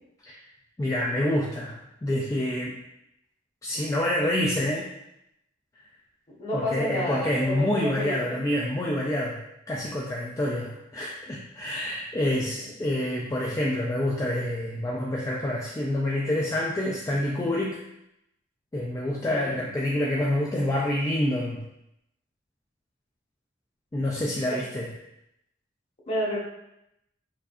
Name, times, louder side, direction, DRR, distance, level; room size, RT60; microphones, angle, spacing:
voice 1, 0.8-2.8 3.6-4.9 6.5-17.8 18.7-21.7 23.9-24.9, left 1 dB, 20° left, -3 dB, 0.3 m, -27 dB
voice 2, 6.4-8.4 12.6-12.7 19.3-19.6 24.5-24.6 26.1-26.4, left 1 dB, 35° left, -5 dB, 1.1 m, -30 dB
4.7 x 2.6 x 2.4 m, 0.84 s
head